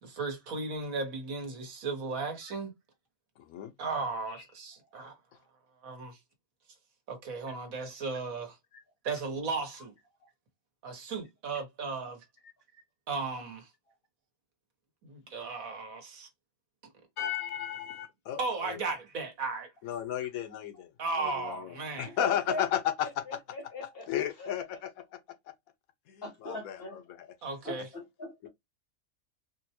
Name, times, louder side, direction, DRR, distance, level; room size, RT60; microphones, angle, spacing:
voice 1, 0.0-2.7 3.8-5.1 5.8-6.2 7.1-8.6 9.0-9.9 10.8-12.2 13.1-13.7 15.0-16.3 18.4-19.7 21.0-22.1 27.4-27.9, right 4 dB, 80° right, 1.5 m, -35 dB
voice 2, 3.4-3.7 17.2-18.8 19.8-20.9 21.2-23.4 24.1-25.0 26.1-27.0 28.4-28.5, left 11 dB, 90° left, 1.1 m, -34 dB
voice 3, 22.0-22.6 23.3-24.5 26.2-27.0 27.6-28.5, left 2 dB, 45° left, 1.1 m, -41 dB
4.2 x 2.2 x 2.8 m
omnidirectional pair, 1.4 m